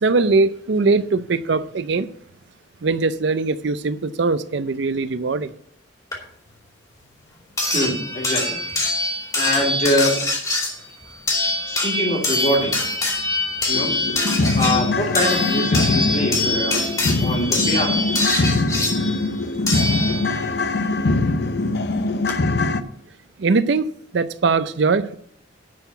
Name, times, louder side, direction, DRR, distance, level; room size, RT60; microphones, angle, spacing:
voice 1, 0.0-2.1 2.8-5.5 23.4-25.1, right 4 dB, 65° right, 0.5 m, -21 dB
sound 1, 6.1-6.2 7.6-20.6 21.8-21.9 22.3-22.4, left 2 dB, 20° left, 2.5 m, -24 dB
voice 2, 7.7-8.6 9.3-10.2 11.7-12.8 13.7-13.9 14.5-16.8 17.2-18.0, left 1 dB, 35° left, 2.6 m, -23 dB
sound 2, 12.8-12.9 13.3-13.4 13.7-22.8, left 2 dB, 55° left, 0.6 m, -22 dB
10.5 x 4.7 x 7.9 m
head